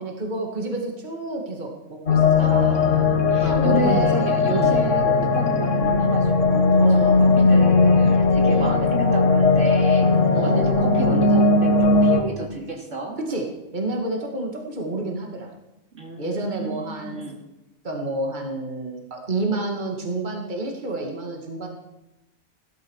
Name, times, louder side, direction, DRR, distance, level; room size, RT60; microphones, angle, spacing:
voice 1, 0.0-2.7 3.4-4.8 6.8-7.2 8.5-8.8 10.3-10.6 13.3-13.4 13.7-15.5 16.2-17.2 17.8-21.7, right 2 dB, 35° right, 0 dB, 2.3 m, -29 dB
sound 1, 2.1-12.2, left 3 dB, 70° left, 2.0 m, -18 dB
voice 2, 2.4-10.0 10.4-13.2 15.9-17.4, right 1 dB, 70° right, 0 dB, 3.2 m, -31 dB
16.5 x 13.0 x 6.4 m, 0.98 s
omnidirectional pair, 1.3 m